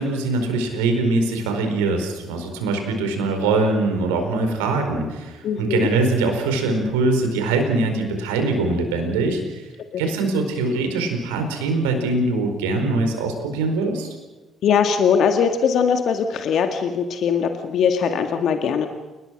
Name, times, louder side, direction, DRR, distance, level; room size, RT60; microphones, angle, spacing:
voice 1, 0.0-9.6 10.0-14.1, right 3 dB, 75° right, 5 dB, 4.6 m, -22 dB
voice 2, 5.4-5.9 9.9-10.0 14.6-18.9, left 7 dB, 60° left, 6 dB, 1.9 m, -20 dB
29.5 x 20.0 x 6.5 m, 1.2 s
hypercardioid pair, 45°, 0 cm